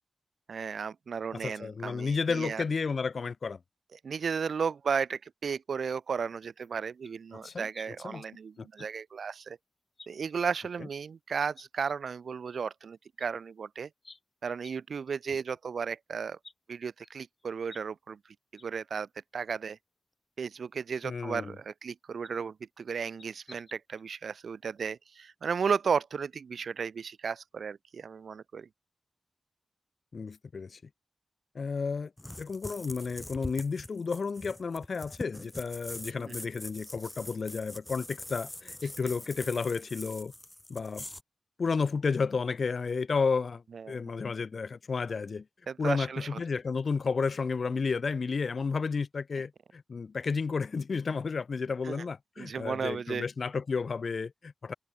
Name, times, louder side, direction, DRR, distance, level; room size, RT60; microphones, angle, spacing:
voice 1, 0.5-2.6 3.9-9.6 10.1-13.9 14.4-16.4 16.7-18.2 18.5-19.8 20.4-28.7 36.2-36.3 43.7-44.0 45.7-46.4 51.8-52.0 52.4-53.3, right 6 dB, 85° right, 0.7 m, -34 dB
voice 2, 1.3-3.6 7.3-7.7 8.0-8.2 8.6-8.7 21.0-21.5 30.1-30.8 31.5-32.1 32.4-40.3 40.7-41.1 41.6-45.4 45.8-54.7, left 5 dB, 60° left, 3.1 m, -32 dB
sound 1, 6.6-6.7 7.0-7.1 7.7-8.9 9.2-9.3 9.9-10.5 11.0-11.1 11.5-11.7 12.9-13.0 13.2-13.3 14.0-14.2 14.6-14.7 15.1-15.2 15.5-15.6 16.4-16.5 17.0-17.8 18.1-18.2 18.6-18.7 19.1-19.2 20.1-20.2 20.9-21.0 22.2-22.4 23.2-24.1 24.4-24.5 24.8-24.9, left 3 dB, 35° left, 7.8 m, -53 dB
sound 2, 32.2-41.2, left 1 dB, 15° left, 5.9 m, -43 dB
wide cardioid pair, 120°, 0 cm